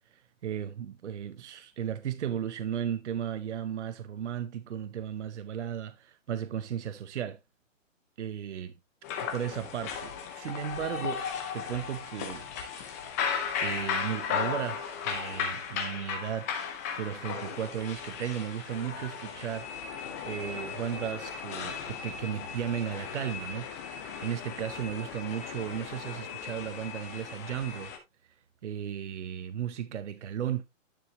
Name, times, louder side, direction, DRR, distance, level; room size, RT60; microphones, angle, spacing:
voice 1, 0.1-7.4 8.2-8.7 9.3-12.9 13.6-16.6 17.0-19.9 20.2-23.7 24.2-27.9 28.2-28.3 28.6-30.6, right 9 dB, 60° right, 0.7 m, -35 dB
sound 1, 9.0-28.0, left 7 dB, 10° left, 0.6 m, -36 dB
10.5 x 4.9 x 2.8 m
hypercardioid pair, 160°, 39 cm